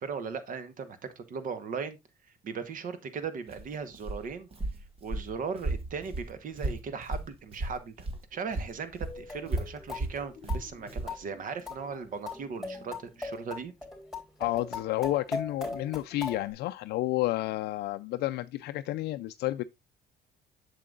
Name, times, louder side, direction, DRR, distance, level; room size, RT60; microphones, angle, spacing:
voice 1, 0.0-2.0 2.4-4.5 5.0-8.1 8.3-13.7, right 5 dB, 55° right, 1.2 m, -38 dB
Walk footsteps, 3.5-8.3 8.5-11.2, right 2 dB, 35° right, 1.5 m, -35 dB
sound 1, 9.1-16.5, left 3 dB, ahead, 3.1 m, -40 dB
voice 2, 14.4-19.6, left 16 dB, 75° left, 0.4 m, -31 dB
7.5 x 6.8 x 2.4 m
cardioid pair, 110°, 17 cm